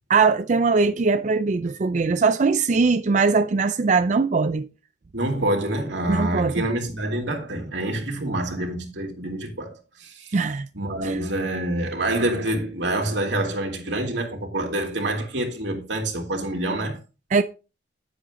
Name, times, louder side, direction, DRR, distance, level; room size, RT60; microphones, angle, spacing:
voice 1, 0.1-4.7 6.1-6.7 10.3-10.7 11.0-11.2 17.3-17.4, right 4 dB, 45° right, 0.4 m, -21 dB
voice 2, 5.1-9.7 10.0-10.4 10.7-17.0, right 1 dB, 85° right, 2.6 m, -26 dB
9.7 x 7.7 x 3.8 m
head